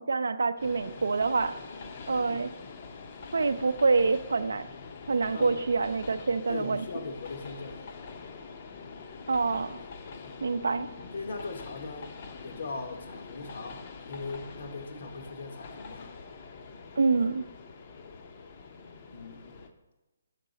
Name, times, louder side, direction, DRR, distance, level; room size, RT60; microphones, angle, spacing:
voice 1, 0.0-1.6 2.1-2.5 3.3-4.7 5.1-6.8 9.3-9.8 10.4-10.9 17.0-17.5, right 4 dB, 80° right, 12 dB, 0.4 m, -26 dB
Train, 0.6-19.7, left 4 dB, 40° left, 0.6 m, -45 dB
voice 2, 6.5-7.8 10.1-10.3 11.1-12.1 12.4-16.1 19.1-19.6, left 3 dB, 65° left, 6 dB, 0.9 m, -40 dB
6.6 x 4.7 x 4.0 m, 1.1 s
hypercardioid pair, 160°, 0 cm